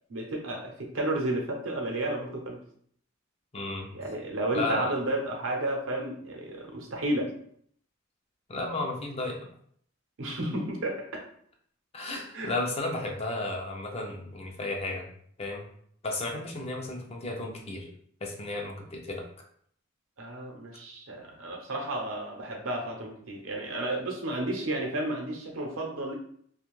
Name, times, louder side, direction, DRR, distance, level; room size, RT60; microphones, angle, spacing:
voice 1, 0.1-2.6 3.9-7.3 10.2-11.3 12.3-12.5 20.2-26.1, right 1 dB, 90° right, 1 dB, 0.7 m, -32 dB
voice 2, 3.5-3.9 4.5-4.9 8.5-9.4 11.9-15.1 15.4-15.7 16.0-17.9 18.2-19.2, left 2 dB, 30° left, 1 dB, 0.5 m, -33 dB
2.5 x 2.3 x 3.0 m, 0.63 s
head